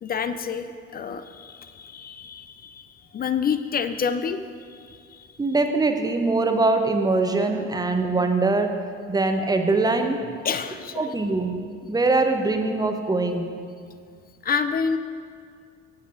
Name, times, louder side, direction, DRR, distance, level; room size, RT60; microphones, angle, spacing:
voice 1, 0.0-4.4 4.7-5.4 10.4-11.1 14.4-15.0, left 6 dB, 25° left, 10 dB, 0.4 m, -28 dB
voice 2, 5.4-8.7 9.1-10.3 11.0-11.6 11.9-13.5, right 3 dB, 10° right, 5 dB, 0.8 m, -22 dB
16.0 x 8.4 x 2.6 m, 2.2 s
figure-of-eight pair, 60°, 40 cm